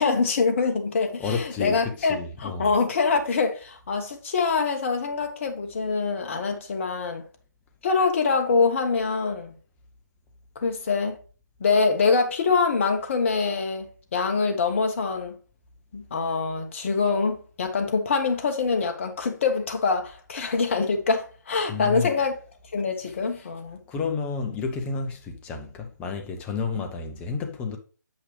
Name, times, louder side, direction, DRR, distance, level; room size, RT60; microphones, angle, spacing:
voice 1, 0.0-7.2 7.8-9.5 10.5-11.2 11.6-15.3 15.9-22.3 22.7-23.8, left 4 dB, 40° left, 1.2 m, -24 dB
voice 2, 1.2-2.7 21.7-22.1 23.9-27.8, left 5 dB, 10° left, 0.7 m, -31 dB
7.7 x 5.6 x 3.3 m
figure-of-eight pair, 150°, 11 cm